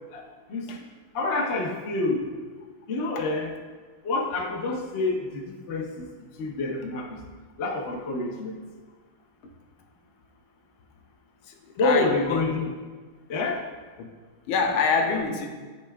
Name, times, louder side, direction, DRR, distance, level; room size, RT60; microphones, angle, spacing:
voice 1, 0.1-0.8 1.1-2.2 2.9-3.5 4.0-6.1 6.4-7.2 7.6-8.6 11.8-12.7 13.3-13.6, left 3 dB, 55° left, 1 dB, 0.7 m, -27 dB
voice 2, 11.4-12.4 14.0-14.1 14.5-15.5, left 4 dB, 85° left, 3 dB, 1.6 m, -26 dB
11.5 x 4.3 x 2.3 m, 1.4 s
omnidirectional pair, 2.2 m